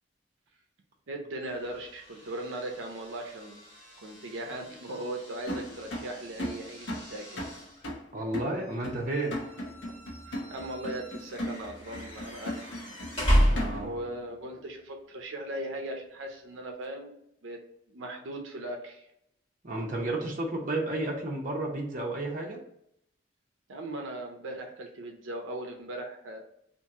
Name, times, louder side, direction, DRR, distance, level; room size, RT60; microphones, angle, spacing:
voice 1, 1.1-3.6 4.0-7.5 10.3-12.8 13.1-13.4 13.8-17.1 17.4-17.6 17.9-19.1 23.7-26.4, right 1 dB, 85° right, 2 dB, 0.6 m, -38 dB
sound 1, 1.4-14.2, equal, 30° left, 1.3 m, -34 dB
sound 2, 5.5-14.1, equal, 65° left, 0.8 m, -38 dB
voice 2, 8.1-9.4 13.4-13.9 19.6-22.6, right 2 dB, 45° right, -1 dB, 0.7 m, -32 dB
2.9 x 2.5 x 3.5 m, 0.75 s
head